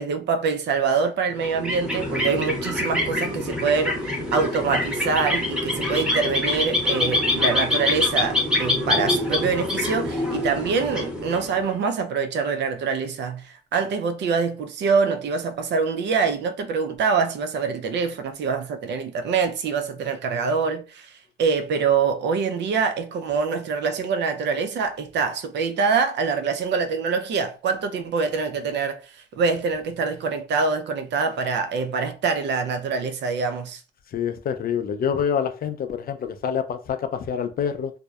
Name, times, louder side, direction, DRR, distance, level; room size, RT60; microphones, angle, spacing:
voice 1, 0.0-33.8, right 5 dB, 60° right, 0.4 m, -25 dB
sound 1, 1.3-11.7, left 2 dB, 5° right, 0.9 m, -25 dB
voice 2, 34.1-37.9, left 7 dB, 50° left, 0.4 m, -26 dB
2.6 x 2.0 x 2.2 m
cardioid pair, 90°, 20 cm